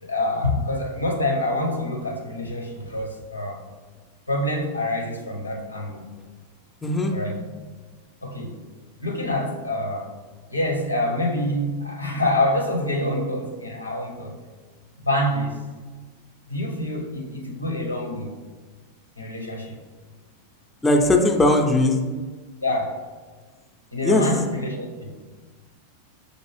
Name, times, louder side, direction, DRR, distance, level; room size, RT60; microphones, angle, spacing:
voice 1, 0.0-3.6 4.3-6.1 7.1-7.4 8.2-8.6 9.0-10.1 10.5-14.4 15.1-15.6 16.5-18.3 19.2-19.8 22.6-22.9 23.9-25.1, left 1 dB, 85° left, 2 dB, 0.7 m, -26 dB
voice 2, 6.8-7.1 20.8-22.0 24.0-24.3, left 2 dB, 10° left, 2 dB, 0.4 m, -18 dB
6.4 x 2.5 x 3.1 m, 1.4 s
figure-of-eight pair, 90°, 0 cm